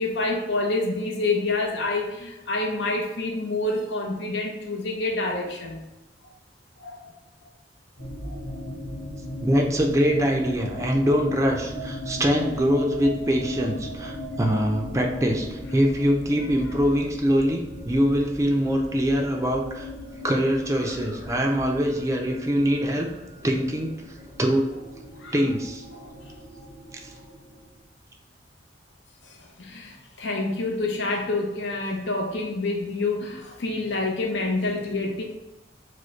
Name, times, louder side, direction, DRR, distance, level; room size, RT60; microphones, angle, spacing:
voice 1, 0.0-5.8 6.8-7.1 8.2-8.4 25.2-25.3 29.2-35.2, left 2 dB, 70° left, -1 dB, 0.7 m, -27 dB
sound 1, 8.0-27.8, left 1 dB, 40° left, 1.2 m, -37 dB
voice 2, 9.4-19.9 20.2-23.1 23.4-23.9 24.4-24.7 25.3-25.8 26.9-27.1, equal, 15° right, 1 dB, 0.4 m, -23 dB
4.9 x 2.1 x 4.4 m, 1.0 s
head